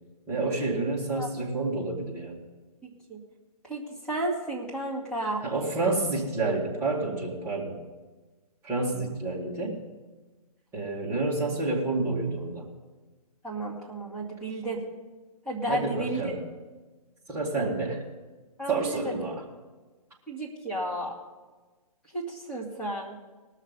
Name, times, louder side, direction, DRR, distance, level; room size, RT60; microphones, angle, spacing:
voice 1, 0.3-2.4 5.4-7.8 8.6-9.8 10.7-12.6 15.7-16.4 17.3-18.0 18.7-19.4, right 3 dB, 10° right, -5 dB, 2.3 m, -29 dB
voice 2, 2.8-3.2 3.6-5.4 13.4-14.8 15.5-16.3 18.6-19.2 20.3-21.1 22.1-23.2, right 1 dB, 5° left, -6 dB, 2.1 m, -33 dB
19.0 x 6.6 x 5.3 m, 1.3 s
hypercardioid pair, 145°, 20 cm